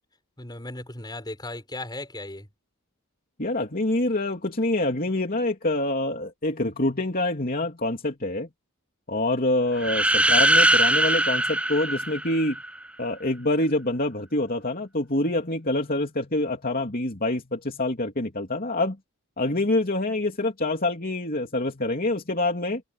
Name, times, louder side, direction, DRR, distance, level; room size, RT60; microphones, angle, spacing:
voice 1, 0.4-2.5, left 2 dB, 20° left, 6.1 m, -36 dB
voice 2, 3.4-8.5 9.1-12.6 13.0-19.0 19.4-22.8, left 2 dB, 45° left, 3.1 m, -26 dB
sound 1, 9.8-12.7, right 1 dB, 5° right, 0.7 m, -21 dB
head